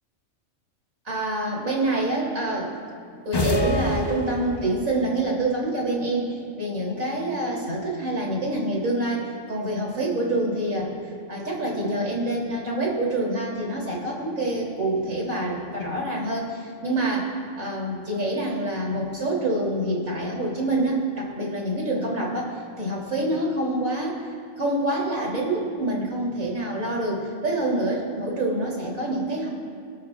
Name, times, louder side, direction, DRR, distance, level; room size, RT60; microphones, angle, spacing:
voice 1, 1.1-2.7 3.1-10.9 11.3-24.2 24.6-29.5, right 1 dB, 80° right, -3 dB, 3.6 m, -26 dB
sound 1, 3.3-4.9, left 1 dB, 20° left, 0.8 m, -25 dB
29.5 x 12.5 x 2.5 m, 2.3 s
omnidirectional pair, 1.4 m